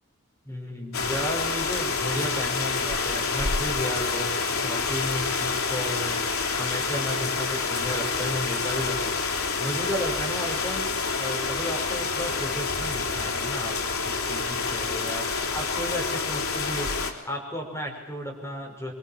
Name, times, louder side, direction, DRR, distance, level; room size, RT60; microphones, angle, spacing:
voice 1, 0.4-6.3 6.6-9.2 9.6-13.8 14.0-16.9 17.2-18.9, equal, 15° left, -1 dB, 6.3 m, -33 dB
sound 1, 0.9-17.1, left 4 dB, 85° left, 3.8 m, -28 dB
25.0 x 24.5 x 7.6 m, 0.99 s
head